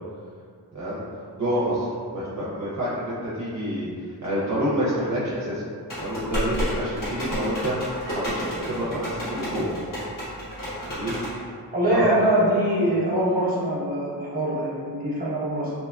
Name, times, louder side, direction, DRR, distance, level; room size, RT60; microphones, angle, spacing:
voice 1, 1.4-3.9 4.2-5.7 6.0-7.8 8.1-9.7 10.9-11.4 11.9-12.1 12.8-12.9 15.7-15.8, equal, 45° right, -9 dB, 0.6 m, -28 dB
sound 1, 5.9-11.3, equal, 50° left, 1.2 m, -31 dB
voice 2, 11.7-15.7, right 1 dB, 20° right, -8 dB, 1.0 m, -23 dB
3.0 x 2.2 x 2.3 m, 2.1 s
cardioid pair, 50°, 42 cm